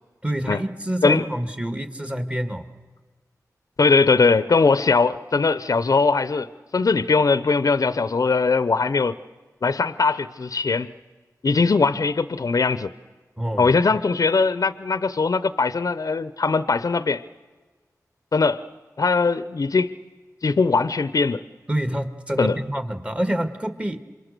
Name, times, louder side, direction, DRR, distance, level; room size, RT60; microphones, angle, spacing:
voice 1, 0.2-2.6 13.4-14.0 21.7-24.0, equal, 15° right, 8 dB, 2.0 m, -27 dB
voice 2, 3.8-6.5 6.7-9.2 9.6-10.9 11.4-12.9 13.6-17.2 18.3-18.6 19.0-19.9 20.4-21.4 22.4-22.6, left 4 dB, 60° left, 14 dB, 0.7 m, -20 dB
27.5 x 24.0 x 6.8 m, 1.3 s
wide cardioid pair, 55°, 7 cm